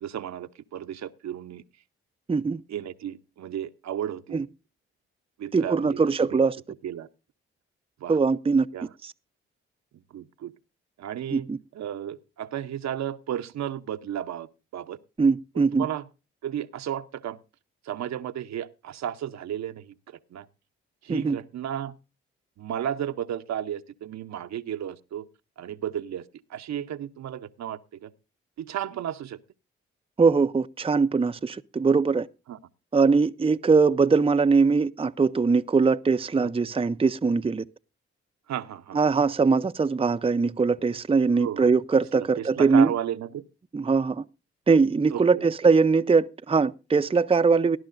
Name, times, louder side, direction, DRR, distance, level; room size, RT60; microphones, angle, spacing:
voice 1, 0.0-1.6 2.7-4.4 5.4-6.0 6.3-6.4 6.8-7.1 8.0-8.2 8.7-8.9 10.1-10.5 11.0-14.5 14.7-15.0 15.5-16.1 16.4-17.4 17.8-20.5 21.0-21.9 22.6-25.3 25.6-26.2 26.5-28.1 28.6-29.4 32.5-32.6 36.4-36.5 38.5-39.0 41.3-41.7 42.4-43.4 45.1-45.4, right 10 dB, 65° right, 0.8 m, -33 dB
voice 2, 2.3-2.6 4.3-4.4 5.5-6.6 8.1-8.7 11.3-11.6 15.2-15.9 21.1-21.4 30.2-32.3 32.9-37.6 38.9-42.9 43.7-44.2 44.7-47.8, right 4 dB, 20° right, 0.6 m, -21 dB
18.5 x 11.0 x 2.6 m
hypercardioid pair, 40°, 29 cm